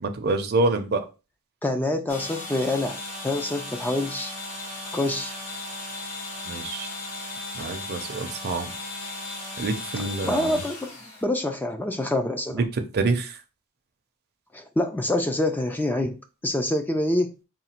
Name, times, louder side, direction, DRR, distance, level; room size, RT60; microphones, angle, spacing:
voice 1, 0.0-1.0 6.5-6.9 7.6-8.7 9.6-10.5 12.9-13.3, right 3 dB, 50° right, 0.6 m, -26 dB
voice 2, 1.6-3.0 3.2-4.4 4.9-5.4 10.0-10.9 11.2-12.6 14.5-17.3, left 1 dB, 10° left, 0.3 m, -26 dB
sound 1, 2.1-11.2, left 2 dB, 70° left, 1.7 m, -36 dB
3.7 x 2.3 x 4.3 m
head